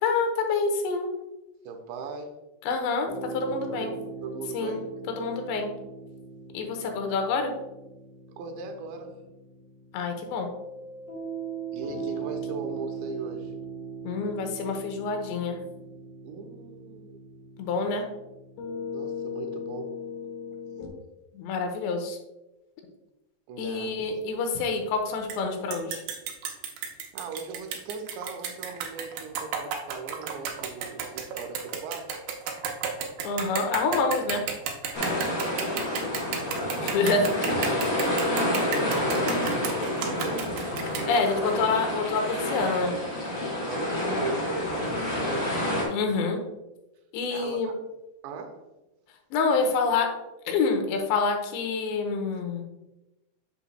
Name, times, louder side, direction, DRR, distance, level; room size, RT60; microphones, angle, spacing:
voice 1, 0.0-1.1 2.7-3.9 4.5-4.8 5.1-5.7 6.5-7.5 9.9-10.5 14.0-15.6 17.6-18.1 21.3-22.2 23.6-26.0 33.2-34.4 36.8-37.3 41.0-42.9 45.9-46.4 47.1-47.7 49.3-50.1 50.5-52.6, left 4 dB, 85° left, 4 dB, 3.1 m, -27 dB
voice 2, 1.6-2.4 3.5-4.9 8.3-9.2 11.7-13.6 16.2-17.2 18.9-20.0 23.5-24.2 27.1-32.2 35.5-37.3 37.8-38.2 38.9-41.6 43.6-45.5 47.3-47.7 48.2-48.7, right 4 dB, 90° right, 4 dB, 3.0 m, -39 dB
sound 1, 3.0-20.9, right 2 dB, 55° left, 2.5 m, -39 dB
sound 2, 25.3-25.4 25.7-41.5, right 7 dB, 75° right, 2.4 m, -33 dB
sound 3, 34.9-45.8, left 1 dB, 30° left, 1.6 m, -29 dB
8.7 x 7.1 x 2.2 m, 0.98 s
omnidirectional pair, 5.1 m